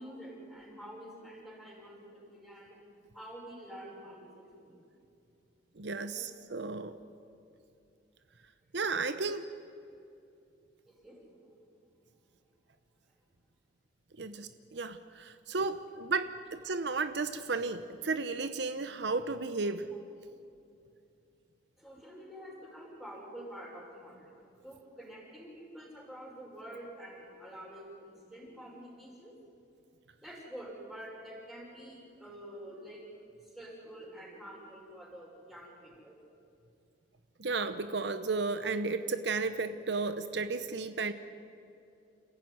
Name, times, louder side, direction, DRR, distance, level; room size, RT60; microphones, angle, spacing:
voice 1, 0.0-2.8 3.1-4.8 6.1-6.3 10.9-11.6 21.8-29.4 30.2-33.0 33.4-36.2, equal, ahead, -3 dB, 5.7 m, -48 dB
voice 2, 5.8-6.9 8.7-9.5 14.2-19.9 37.4-41.1, right 4 dB, 65° right, 11 dB, 0.9 m, -33 dB
28.5 x 15.0 x 9.5 m, 2.7 s
head